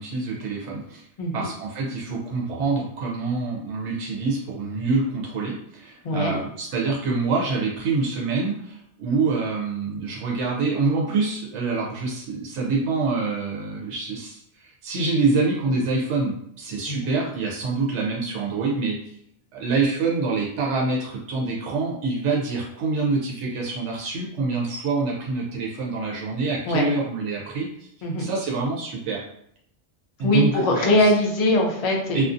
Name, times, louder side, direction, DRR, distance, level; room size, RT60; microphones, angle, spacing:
voice 1, 0.0-1.0 1.3-19.0 19.5-27.9 28.2-29.2 30.2-31.1 32.1-32.2, right 3 dB, 90° right, -3 dB, 0.9 m, -26 dB
voice 2, 6.0-6.4 16.9-17.1 26.7-26.8 28.0-28.3 30.2-32.2, left 1 dB, 65° left, 1 dB, 0.3 m, -21 dB
2.5 x 2.3 x 2.5 m, 0.71 s
omnidirectional pair, 1.2 m